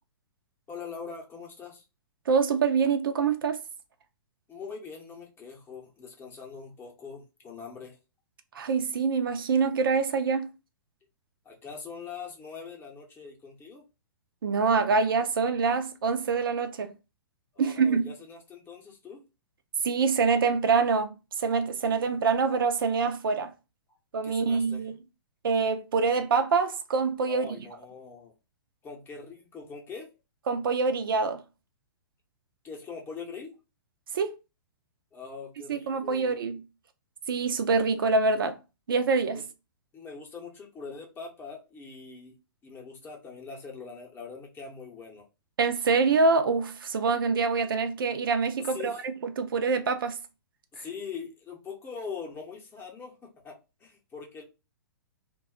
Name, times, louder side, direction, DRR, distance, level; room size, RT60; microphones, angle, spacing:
voice 1, 0.7-1.8 4.5-8.0 11.4-13.8 17.5-19.2 24.2-24.8 27.3-28.3 28.8-30.1 32.6-33.5 35.1-36.3 39.3-39.4 39.9-42.4 42.6-45.3 48.6-49.0 50.7-54.4, left 5 dB, 20° left, 0.7 m, -42 dB
voice 2, 2.3-3.6 8.5-10.5 14.4-16.9 17.6-18.1 19.8-23.5 24.1-24.9 25.4-27.5 30.5-31.4 34.1-34.3 35.7-36.6 37.3-38.6 38.9-39.4 45.6-50.2 50.8-50.9, right 4 dB, 65° right, 0.4 m, -25 dB
2.2 x 2.0 x 3.6 m
figure-of-eight pair, 115°, 12 cm